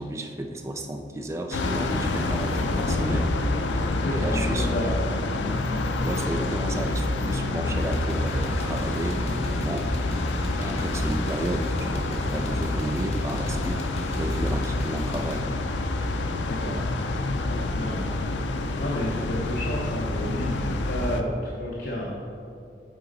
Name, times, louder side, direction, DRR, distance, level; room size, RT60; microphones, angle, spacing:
voice 1, 0.0-3.3 3.7-4.7 6.0-13.8 14.1-15.4, right 1 dB, 15° right, 5 dB, 0.3 m, -33 dB
sound 1, 1.5-21.2, left 2 dB, 90° left, 0.5 m, -27 dB
voice 2, 3.9-5.0 16.5-16.8 17.5-18.1 18.8-22.1, left 1 dB, 65° left, -4 dB, 0.9 m, -31 dB
sound 2, 7.8-15.4, left 1 dB, 35° left, 0.7 m, -33 dB
8.4 x 4.0 x 4.0 m, 2.5 s
head